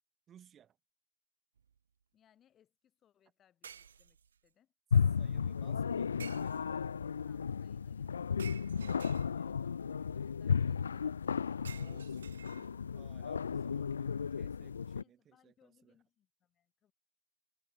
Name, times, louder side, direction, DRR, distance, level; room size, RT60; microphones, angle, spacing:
voice 1, 0.3-0.8 5.2-6.7 11.7-12.4 12.9-16.0, right 9 dB, 10° right, 5.6 m, -61 dB
sound 1, 1.6-1.8 3.6-4.5 6.2-7.0 8.4-9.7 11.6-13.0, right 7 dB, 65° right, 2.9 m, -52 dB
voice 2, 2.1-4.2 4.4-4.7 7.2-12.2 15.0-16.9, left 10 dB, 10° left, 5.1 m, -70 dB
sound 2, 4.9-15.0, left 6 dB, 80° left, 0.6 m, -34 dB
hypercardioid pair, 175°, 0 cm